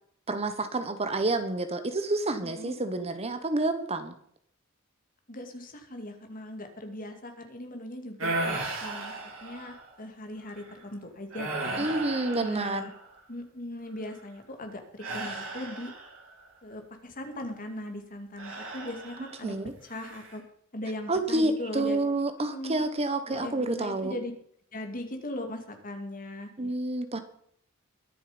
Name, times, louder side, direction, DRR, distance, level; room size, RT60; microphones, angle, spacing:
voice 1, 0.3-4.1 11.8-12.9 19.4-19.7 21.1-24.1 26.6-27.2, right 2 dB, 30° right, 9 dB, 1.2 m, -29 dB
voice 2, 5.3-8.3 8.8-9.1 9.4-11.9 12.4-12.9 13.3-15.9 16.6-19.6 19.8-20.4 20.7-22.7 23.3-24.3 24.7-26.5, left 1 dB, 40° left, 5 dB, 2.5 m, -39 dB
sound 1, 8.2-9.9 10.5-10.7 11.3-13.2 15.0-16.3 18.4-19.5 19.9-20.4, right 2 dB, 70° right, 4.6 m, -35 dB
22.0 x 7.6 x 5.2 m, 0.65 s
head